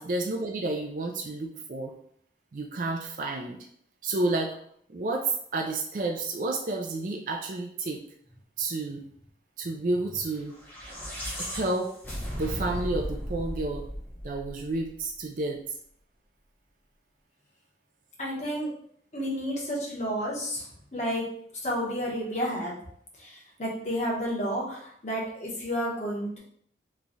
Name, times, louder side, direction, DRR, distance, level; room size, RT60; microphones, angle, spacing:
voice 1, 0.0-1.9 2.5-3.6 4.0-4.5 4.9-8.0 8.6-9.0 9.6-10.5 11.4-11.9 12.3-13.9 14.2-15.6, right 2 dB, 45° right, 1 dB, 0.4 m, -30 dB
sound 1, 10.5-14.9, equal, 10° left, 0.7 m, -36 dB
voice 2, 18.2-18.7 19.1-20.6 20.9-21.3 21.6-22.8 23.2-26.4, equal, 40° left, -4 dB, 1.0 m, -31 dB
3.1 x 2.3 x 4.0 m, 0.64 s
head